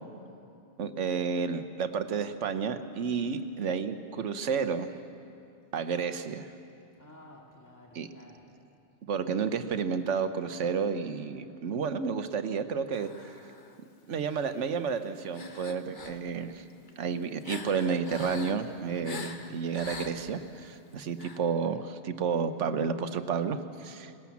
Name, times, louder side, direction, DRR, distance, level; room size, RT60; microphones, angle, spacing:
voice 1, 0.8-4.9 5.7-6.5 7.9-8.1 9.0-13.4 14.1-16.6 17.0-24.1, right 6 dB, 80° right, 10 dB, 1.2 m, -31 dB
voice 2, 3.0-3.4 7.0-8.6, left 1 dB, 15° left, -1 dB, 2.2 m, -54 dB
sound 1, 12.9-13.8 14.3-14.5 15.3-16.2 16.7-20.5 21.1-21.4, left 3 dB, 45° left, 1.3 m, -43 dB
20.5 x 18.5 x 7.2 m, 2.6 s
omnidirectional pair, 1.2 m